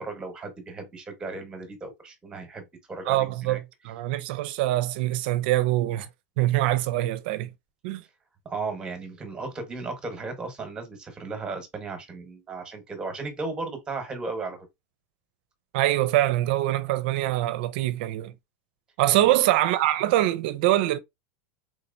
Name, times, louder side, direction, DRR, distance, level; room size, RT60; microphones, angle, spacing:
voice 1, 0.0-3.6 8.4-14.7 19.1-19.3, right 3 dB, 15° right, 1.0 m, -35 dB
voice 2, 3.1-3.6 3.8-6.1 6.4-7.5 7.8-8.0 15.7-18.3 19.0-21.0, right 15 dB, 55° right, 0.5 m, -24 dB
3.7 x 2.9 x 2.6 m
supercardioid pair, 170°, 7 cm